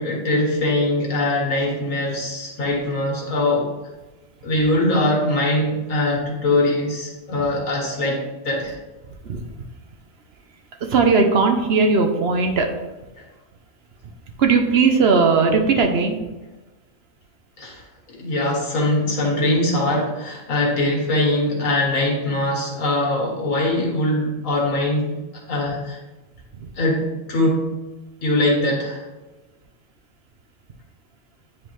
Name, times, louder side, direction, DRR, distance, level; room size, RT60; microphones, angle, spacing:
voice 1, 0.0-3.7 4.4-8.8 13.2-13.3 17.6-17.8 18.1-25.1 25.5-26.0 26.8-27.7 28.2-29.0, left 1 dB, 80° left, -2 dB, 1.9 m, -22 dB
voice 2, 10.8-12.7 14.0-14.1 14.4-16.2 26.5-26.7, right 4 dB, 55° right, 4 dB, 0.9 m, -18 dB
9.5 x 3.6 x 3.1 m, 1.1 s
omnidirectional pair, 1.4 m